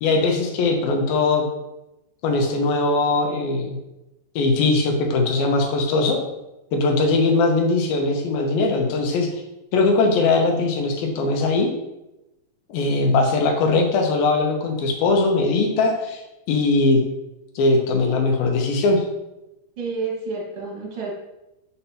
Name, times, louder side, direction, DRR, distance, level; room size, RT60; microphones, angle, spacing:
voice 1, 0.0-1.5 2.2-3.8 4.4-6.2 6.7-9.3 9.7-11.7 12.7-16.2 16.5-17.0 17.6-19.1, left 3 dB, 75° left, 2 dB, 2.7 m, -20 dB
voice 2, 19.8-21.1, right 4 dB, 50° right, -3 dB, 2.0 m, -29 dB
8.6 x 5.5 x 2.8 m, 0.95 s
omnidirectional pair, 4.3 m